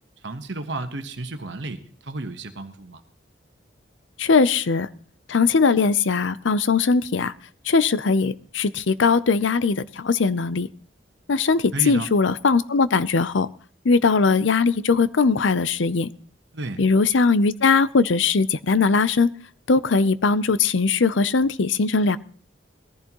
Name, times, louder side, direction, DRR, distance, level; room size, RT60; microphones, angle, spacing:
voice 1, 0.2-3.0 11.7-12.1 16.5-16.8, right 2 dB, 65° right, 7 dB, 1.2 m, -32 dB
voice 2, 4.2-4.9 5.3-7.3 7.7-10.7 11.3-13.5 13.8-16.1 16.8-19.3 19.7-22.2, left 4 dB, 75° left, 16 dB, 0.6 m, -20 dB
21.0 x 14.5 x 3.0 m, 0.44 s
head